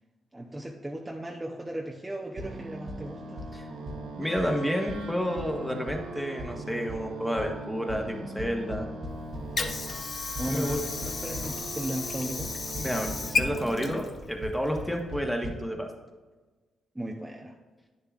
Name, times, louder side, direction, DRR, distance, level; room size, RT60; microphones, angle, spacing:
voice 1, 0.3-3.5 10.4-12.5 16.9-17.6, right 1 dB, 15° right, 0 dB, 0.8 m, -36 dB
sound 1, 2.4-2.5 2.9-3.0 3.4-3.5 3.9-4.0 4.4-4.5 4.9-5.0 5.4-5.5 5.9-6.0 6.4-6.5 6.9-7.0 7.4-7.5 7.9-8.0 8.4-9.4 10.4-11.4 12.4-12.5 12.7-13.1 13.4-13.5 14.4-14.5 14.8-14.9 15.1-15.2 15.4-15.5, equal, 55° right, 1.2 m, -37 dB
sound 2, 2.4-14.0, right 2 dB, 80° right, 1.0 m, -41 dB
voice 2, 4.1-8.9 10.5-10.8 12.8-15.9, equal, 5° left, 2 dB, 1.4 m, -30 dB
Water / Sink (filling or washing), 9.1-15.1, left 3 dB, 50° left, 0.7 m, -34 dB
9.6 x 6.7 x 2.5 m, 1.3 s
supercardioid pair, 60°, 0 cm